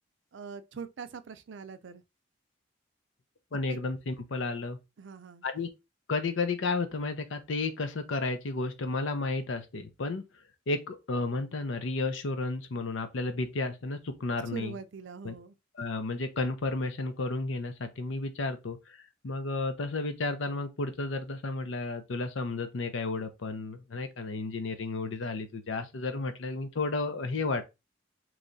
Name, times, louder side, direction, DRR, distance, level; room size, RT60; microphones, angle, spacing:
voice 1, 0.3-2.0 3.7-3.8 5.0-5.5 14.5-15.6, right 5 dB, 70° right, 0.5 m, -42 dB
voice 2, 3.5-4.8 5.4-5.7 6.1-10.2 10.7-14.7 15.2-15.3 15.8-27.6, left 3 dB, 75° left, 0.6 m, -32 dB
3.1 x 2.4 x 3.9 m
head